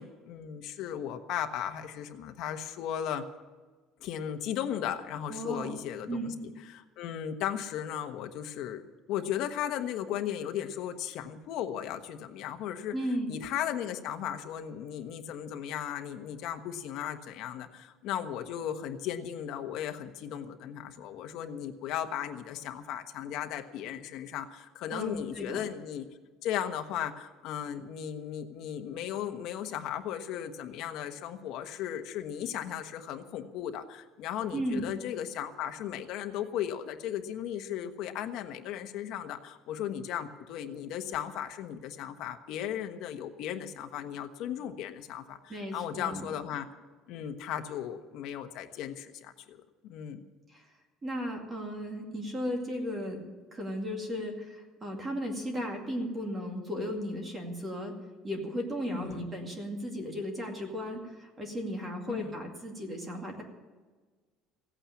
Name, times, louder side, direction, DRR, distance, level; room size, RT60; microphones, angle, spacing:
voice 1, 0.0-3.2 4.0-8.8 9.1-12.9 13.3-26.1 26.4-46.7 47.1-49.6 49.8-50.2 58.9-59.2 62.1-62.3, left 10 dB, 55° left, 6 dB, 1.2 m, -36 dB
voice 2, 5.3-5.7 6.1-6.4 12.9-13.3 24.9-25.6 34.5-34.9 45.5-46.3 50.5-50.7 51.0-53.2 53.5-57.9 58.2-63.4, equal, 20° right, 2 dB, 2.3 m, -35 dB
16.0 x 8.9 x 8.6 m, 1.3 s
cardioid pair, 175°, 0 cm